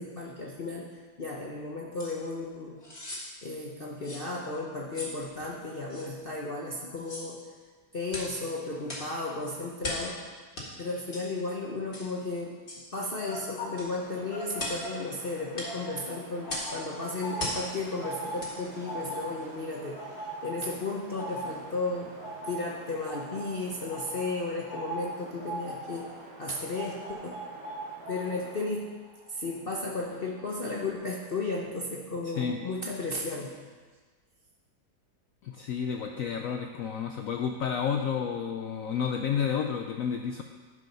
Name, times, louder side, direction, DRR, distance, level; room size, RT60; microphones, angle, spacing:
voice 1, 0.0-3.1 3.4-7.5 7.9-10.2 10.8-12.6 12.9-22.1 22.5-27.5 28.1-28.9 29.3-33.6, left 3 dB, 45° left, -3 dB, 0.7 m, -34 dB
sound 1, 2.0-2.1 2.8-3.3 4.0-4.3 4.9-5.2 5.9-6.1 7.0-7.3 8.1-8.3 8.9-9.1 9.8-10.1 10.5-10.7 11.1-11.3 11.9-12.1 12.7-12.9 13.8-13.9 14.6-14.8 15.5-15.7 16.5-16.7 17.4-17.6 18.4-18.5 19.0-19.1, left 1 dB, 30° left, 1.8 m, -37 dB
sound 2, 13.1-15.3 15.6-30.5 30.7-31.1, right 1 dB, 65° left, 2.3 m, -41 dB
Wind, 13.8-28.7, right 3 dB, 55° right, 1.4 m, -49 dB
voice 2, 32.2-32.6 35.4-40.4, left 7 dB, 80° left, 4 dB, 0.7 m, -31 dB
11.0 x 4.9 x 5.5 m, 1.4 s
omnidirectional pair, 1.9 m